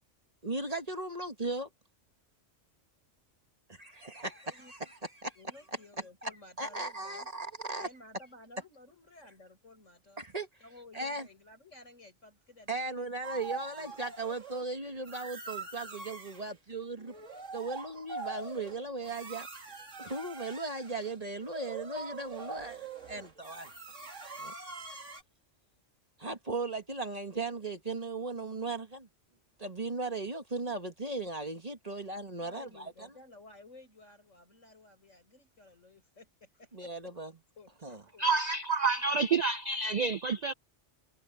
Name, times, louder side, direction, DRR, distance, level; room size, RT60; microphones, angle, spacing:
voice 1, 0.4-1.7 3.7-5.3 6.2-6.3 6.6-7.9 10.2-10.5 10.9-11.3 12.7-17.1 17.5-19.5 20.0-23.7 24.4-24.5 26.2-29.1 29.6-33.1 36.7-37.3 37.8-38.0, right 3 dB, 30° right, 1.8 m, -37 dB
voice 2, 5.4-7.3 7.8-10.3 10.6-14.1 31.9-32.0 32.4-36.9 37.6-37.7 38.1-38.3 38.9-39.1, left 2 dB, 85° left, 7.9 m, -55 dB
sound 1, 13.2-14.6 15.0-16.5 17.0-25.2, right 4 dB, 85° right, 2.7 m, -43 dB
voice 3, 38.2-40.5, right 4 dB, 65° right, 0.4 m, -28 dB
omnidirectional pair, 1.3 m